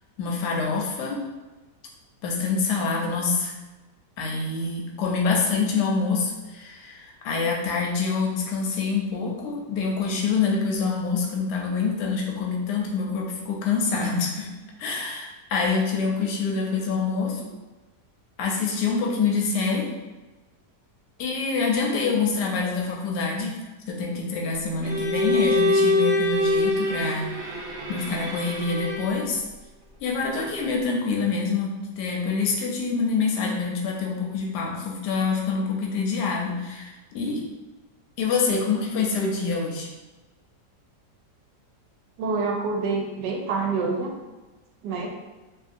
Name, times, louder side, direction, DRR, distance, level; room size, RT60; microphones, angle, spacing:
voice 1, 0.2-1.2 2.2-3.5 4.2-14.5 14.8-17.5 18.4-19.9 21.2-23.5 23.9-27.6 27.9-29.4 30.0-37.4 38.2-39.9, left 4 dB, 80° left, 0 dB, 1.2 m, -26 dB
Bowed string instrument, 24.8-29.3, left 1 dB, 60° right, 0.8 m, -24 dB
voice 2, 42.2-44.1 44.8-45.1, right 4 dB, 80° right, 0 dB, 1.2 m, -26 dB
2.8 x 2.7 x 2.5 m, 1.2 s
omnidirectional pair, 1.8 m